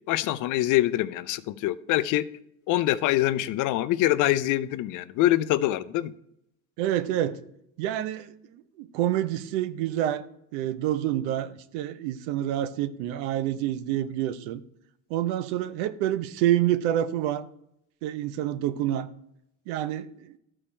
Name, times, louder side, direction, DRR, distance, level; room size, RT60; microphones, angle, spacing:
voice 1, 0.1-2.3 2.7-6.1, left 15 dB, 60° left, 0.6 m, -24 dB
voice 2, 6.8-7.4 7.8-10.2 10.5-14.6 15.1-17.5 18.0-19.1 19.7-20.3, right 12 dB, 80° right, 0.8 m, -28 dB
12.5 x 4.4 x 4.4 m
supercardioid pair, 105°, 36 cm